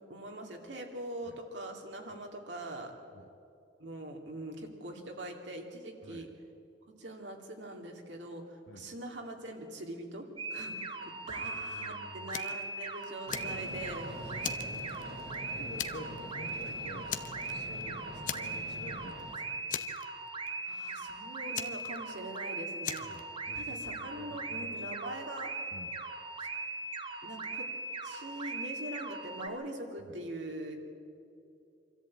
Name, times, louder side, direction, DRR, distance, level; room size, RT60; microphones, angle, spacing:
voice 1, 0.1-2.9 3.8-6.3 6.9-14.1 15.4-15.5 20.6-23.0 23.5-25.5 26.4-26.5 27.2-27.7 28.0-30.8, right 1 dB, 85° right, 2 dB, 2.7 m, -43 dB
sound 1, 10.4-29.5, right 2 dB, 25° right, 1.2 m, -40 dB
voice 2, 11.4-12.4 14.6-14.9 15.5-19.6 23.0-24.8 25.7-26.0 30.1-30.2, left 1 dB, 75° left, 2 dB, 1.2 m, -50 dB
Fire, 12.3-12.6 13.0-14.0 14.4-15.4 15.8-16.2 16.5-16.6 17.1-17.8 18.3-18.8 19.1-19.2 19.7-20.5 21.5-22.4 22.8-23.2, left 9 dB, 45° left, 0.8 m, -39 dB
Train, 13.3-19.3, equal, 60° right, 3.5 m, -45 dB
25.0 x 14.0 x 8.7 m, 2.6 s
head